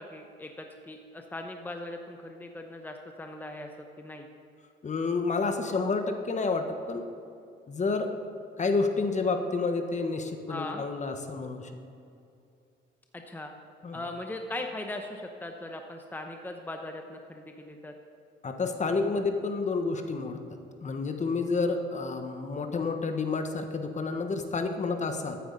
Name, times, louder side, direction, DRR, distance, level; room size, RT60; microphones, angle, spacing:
voice 1, 0.0-3.7 4.0-4.3 10.5-10.8 13.1-13.5 13.9-17.9, left 2 dB, 10° left, 4 dB, 0.9 m, -39 dB
voice 2, 4.8-7.1 7.7-8.1 8.6-11.7 13.8-14.0 18.4-20.4 20.8-25.4, left 4 dB, 35° left, 6 dB, 1.2 m, -29 dB
13.5 x 9.2 x 4.0 m, 2.5 s
cardioid pair, 90°, 20 cm